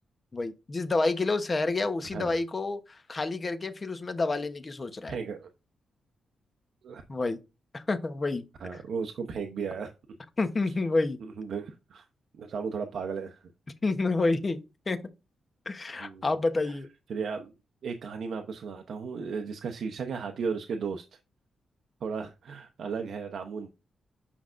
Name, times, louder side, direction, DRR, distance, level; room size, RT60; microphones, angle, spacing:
voice 1, 0.3-5.2 7.1-7.4 7.7-8.4 10.4-11.2 13.8-15.0 15.7-16.9, left 3 dB, 30° left, 1.0 m, -29 dB
voice 2, 5.1-5.5 6.8-7.0 8.6-9.9 11.2-12.1 12.4-13.4 16.0-16.3 16.7-16.8 17.1-17.5 17.8-21.0 22.0-23.7, right 5 dB, 65° right, 0.8 m, -35 dB
8.5 x 5.6 x 2.6 m
wide cardioid pair, 130°, 0 cm